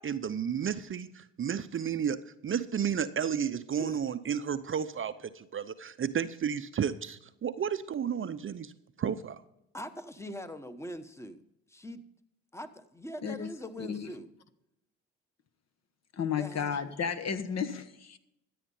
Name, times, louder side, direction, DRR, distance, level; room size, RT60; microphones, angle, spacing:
voice 1, 0.0-8.7 9.0-9.4, right 8 dB, 35° right, 12 dB, 0.7 m, -32 dB
voice 2, 9.7-11.4 11.7-12.0 12.5-14.3 16.4-16.8, equal, 5° left, 10 dB, 1.2 m, -42 dB
voice 3, 16.1-18.2, left 7 dB, 45° left, 9 dB, 1.3 m, -33 dB
13.5 x 8.7 x 5.5 m, 0.82 s
supercardioid pair, 70°, 36 cm